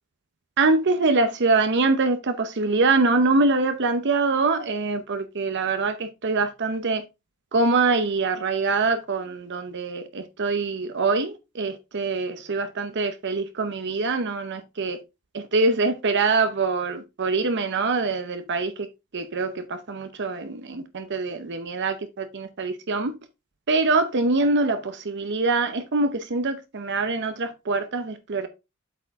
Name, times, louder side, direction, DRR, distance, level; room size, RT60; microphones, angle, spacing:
voice 1, 0.6-7.0 7.5-15.0 15.3-18.9 19.1-23.1 23.7-28.5, right 3 dB, 50° right, 0.7 m, -24 dB
8.1 x 4.8 x 3.5 m
head